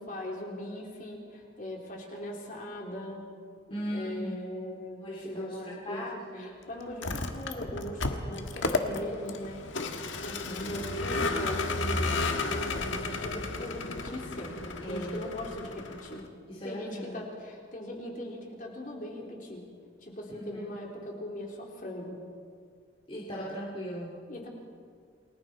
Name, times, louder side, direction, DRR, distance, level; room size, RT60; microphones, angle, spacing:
voice 1, 0.1-3.2 3.7-5.0 5.3-6.1 6.3-16.2 16.6-19.6 20.0-22.2 24.3-24.5, left 1 dB, 45° left, -1 dB, 3.8 m, -40 dB
voice 2, 3.7-4.4 5.0-6.5 14.8-15.2 16.5-17.2 20.3-20.6 23.1-24.2, equal, 30° left, -3 dB, 2.4 m, -38 dB
Vehicle, 6.9-16.3, left 3 dB, 90° left, 1.6 m, -33 dB
29.0 x 20.5 x 4.5 m, 2.1 s
head